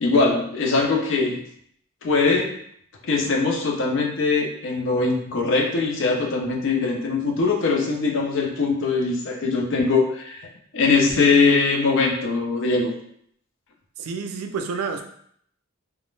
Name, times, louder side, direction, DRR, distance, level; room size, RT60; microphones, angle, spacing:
voice 1, 0.0-1.4 2.0-2.6 3.0-12.9, left 4 dB, 60° left, 2 dB, 0.5 m, -21 dB
voice 2, 14.0-15.0, right 5 dB, 85° right, 6 dB, 0.3 m, -29 dB
2.4 x 2.0 x 3.1 m, 0.66 s
head